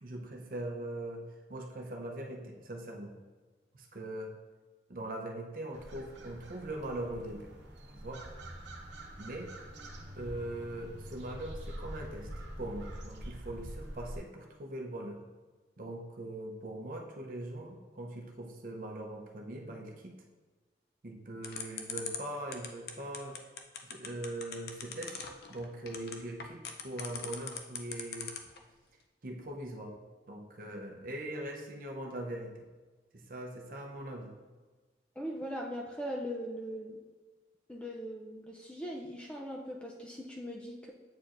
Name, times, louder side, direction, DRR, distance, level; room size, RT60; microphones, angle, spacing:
voice 1, 0.0-3.1 3.7-4.3 4.9-7.5 7.9-8.3 9.2-9.5 10.2-12.3 12.6-15.2 15.8-20.1 21.0-23.4 23.9-25.2 25.5-28.4 29.2-30.0 30.3-32.6 33.1-34.3, right 1 dB, 50° right, 1 dB, 0.7 m, -41 dB
sound 1, 5.7-14.2, right 1 dB, 90° right, 0.9 m, -45 dB
sound 2, 21.4-28.6, left 7 dB, 60° left, 0.5 m, -40 dB
voice 2, 35.2-37.0 37.7-40.9, equal, 5° left, -1 dB, 0.4 m, -40 dB
8.4 x 4.4 x 2.5 m, 1.3 s
head